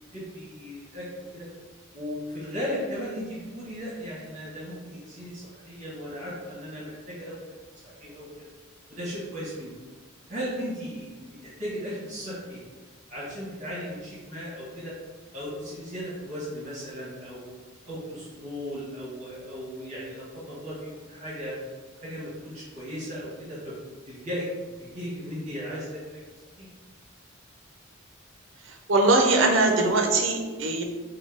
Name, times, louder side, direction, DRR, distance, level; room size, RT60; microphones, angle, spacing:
voice 1, 0.1-1.0 1.3-1.5 1.9-7.6 7.8-8.5 8.9-9.7 10.3-12.6 13.1-14.9 15.3-17.5 17.8-21.6 22.0-23.8 24.1-26.2 26.6-26.7, equal, 35° right, -8 dB, 1.3 m, -36 dB
voice 2, 28.9-30.8, right 2 dB, 65° right, 3 dB, 0.6 m, -21 dB
4.2 x 2.2 x 4.6 m, 1.4 s
head